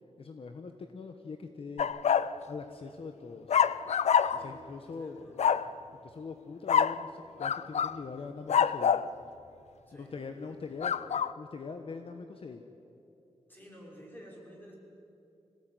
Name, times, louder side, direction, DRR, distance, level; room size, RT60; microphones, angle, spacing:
voice 1, 0.2-1.9 2.2-3.6 4.3-5.2 6.0-9.0 9.9-11.0 11.4-12.6, left 4 dB, 55° left, 6 dB, 1.2 m, -42 dB
sound 1, 1.8-2.3 3.5-4.5 5.4-5.7 6.7-7.0 7.4-8.0 8.5-9.1 10.8-11.3, left 7 dB, 80° left, 0.6 m, -26 dB
voice 2, 4.3-4.6 4.9-5.5 9.9-10.1 13.5-14.8, equal, 15° left, -2 dB, 5.7 m, -50 dB
25.0 x 17.5 x 9.5 m, 2.8 s
wide cardioid pair, 160°, 11 cm